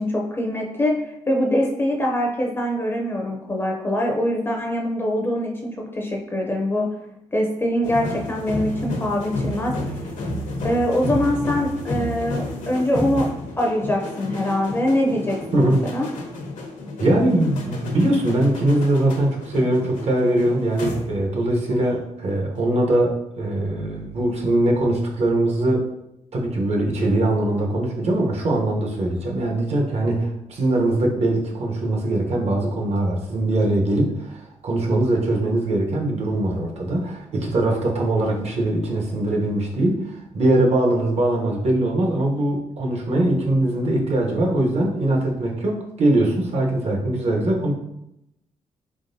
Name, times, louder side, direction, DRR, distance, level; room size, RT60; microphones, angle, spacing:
voice 1, 0.0-6.9 7.3-10.0 10.6-13.3 13.6-16.1, left 1 dB, 20° left, -1 dB, 0.5 m, -23 dB
sound 1, 7.8-21.4 21.7-22.0, left 1 dB, 75° left, 0.8 m, -31 dB
voice 2, 17.0-25.8 26.3-47.7, right 1 dB, 55° right, 0 dB, 0.9 m, -21 dB
3.7 x 3.5 x 2.6 m, 0.83 s
cardioid pair, 110°, 13 cm